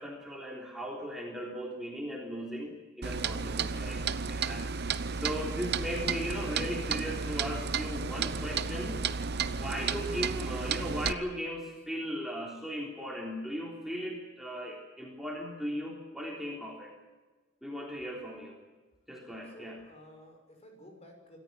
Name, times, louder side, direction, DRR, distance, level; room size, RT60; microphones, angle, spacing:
voice 1, 0.0-9.0 9.5-16.9 17.6-18.6 19.1-19.8, equal, ahead, -2 dB, 3.6 m, -38 dB
Clock, 3.0-11.1, right 5 dB, 55° right, 0.9 m, -33 dB
voice 2, 19.5-21.4, equal, 35° left, 3 dB, 6.4 m, -53 dB
26.5 x 14.5 x 9.7 m, 1.3 s
head